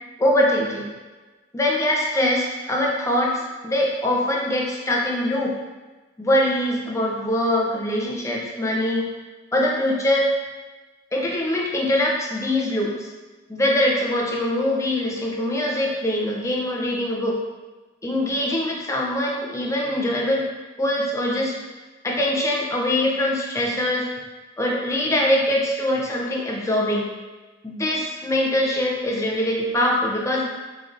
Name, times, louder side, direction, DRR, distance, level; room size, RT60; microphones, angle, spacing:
voice 1, 0.2-0.9 1.5-5.5 6.2-9.1 9.5-10.3 11.1-13.1 13.5-17.4 18.0-20.5 20.8-21.6 22.0-24.1 24.6-27.1 27.6-30.5, left 1 dB, 15° left, -3 dB, 0.5 m, -23 dB
3.8 x 3.2 x 2.5 m, 1.2 s
head